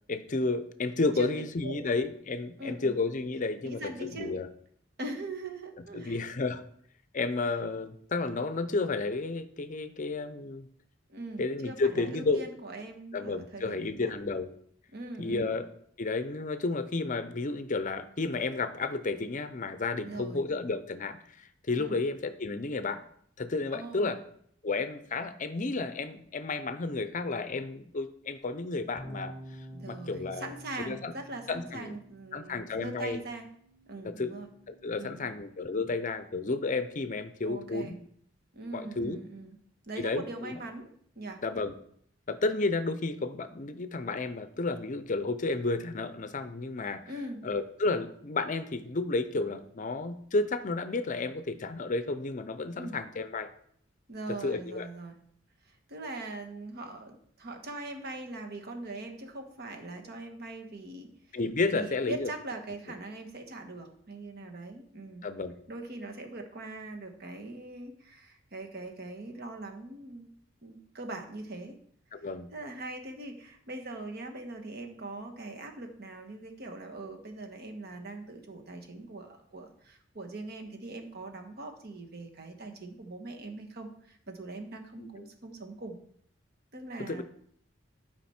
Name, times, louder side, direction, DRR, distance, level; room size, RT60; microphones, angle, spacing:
voice 1, 0.1-4.5 5.9-6.6 7.1-10.7 11.4-12.4 13.1-14.5 15.2-15.7 16.0-23.0 23.4-24.2 24.6-29.3 29.9-30.5 30.9-31.1 31.5-32.0 32.3-33.2 34.0-34.3 34.7-38.0 38.7-39.2 40.0-40.6 41.4-41.7 42.3-47.0 47.4-53.5 54.4-54.9 61.3-62.3 65.2-65.5 72.1-72.5 85.0-85.2 87.1-87.2, left 3 dB, 40° left, 11 dB, 0.6 m, -32 dB
voice 2, 2.6-2.9 3.6-4.3 5.0-6.2 7.4-7.5 11.1-14.1 14.9-15.5 20.0-20.4 21.8-22.0 23.7-24.2 29.7-33.5 33.9-34.5 35.0-35.4 37.4-37.9 38.5-39.6 39.9-40.9 41.1-41.4 47.1-47.5 52.8-53.0 54.1-55.2 55.6-61.4 61.7-65.3 65.7-70.2 70.6-71.8 72.5-86.0 86.7-87.2, right 2 dB, 55° right, 4 dB, 1.3 m, -41 dB
sound 1, 29.0-35.2, equal, 20° left, 1.2 m, -49 dB
11.5 x 5.1 x 4.3 m, 0.65 s
head